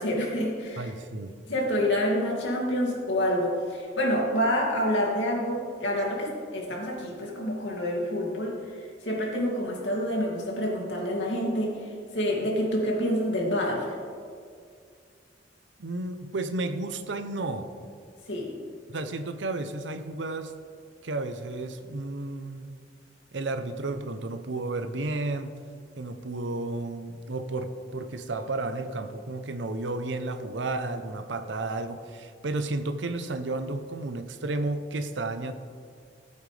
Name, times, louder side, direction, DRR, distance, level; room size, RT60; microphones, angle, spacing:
voice 1, 0.0-0.9 1.5-8.6 9.0-13.9 18.3-18.5, equal, 85° left, -2 dB, 2.4 m, -27 dB
voice 2, 0.8-1.3 15.8-17.7 18.9-20.6 21.0-22.8 23.3-25.6 26.0-35.5, right 2 dB, 75° right, 9 dB, 0.7 m, -32 dB
15.5 x 8.6 x 3.3 m, 2.2 s
head